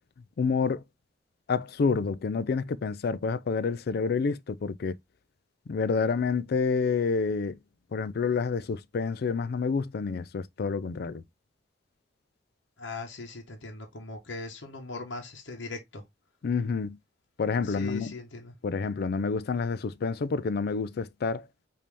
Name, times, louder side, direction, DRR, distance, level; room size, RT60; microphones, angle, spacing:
voice 1, 0.4-0.8 1.5-4.9 5.7-7.6 7.9-11.2 16.4-17.0 17.4-18.1 18.6-21.5, left 5 dB, 60° left, 0.4 m, -28 dB
voice 2, 12.8-16.0 17.7-18.5, left 3 dB, 85° left, 1.0 m, -39 dB
5.2 x 2.8 x 3.3 m
head